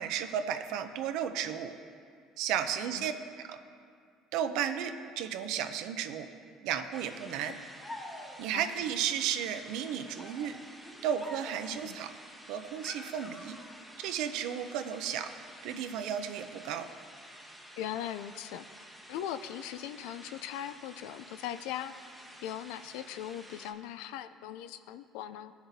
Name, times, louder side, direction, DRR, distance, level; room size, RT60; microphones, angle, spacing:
voice 1, 0.0-1.7 2.4-3.6 4.3-6.3 6.6-7.6 8.4-10.6 11.0-12.1 12.5-13.6 14.0-15.3 15.6-16.9, right 9 dB, 75° right, 9 dB, 0.5 m, -34 dB
voice 2, 2.7-3.1 8.5-8.7 11.8-12.0 17.8-18.6 19.1-21.9 22.4-25.5, left 11 dB, 85° left, 12 dB, 0.3 m, -39 dB
sound 1, 6.9-23.7, equal, ahead, 0.9 m, -52 dB
sound 2, 7.8-8.6 9.8-11.8 12.8-13.9, left 1 dB, 25° left, 1.4 m, -47 dB
15.0 x 6.0 x 2.7 m, 2.2 s
cardioid pair, 105°, 0 cm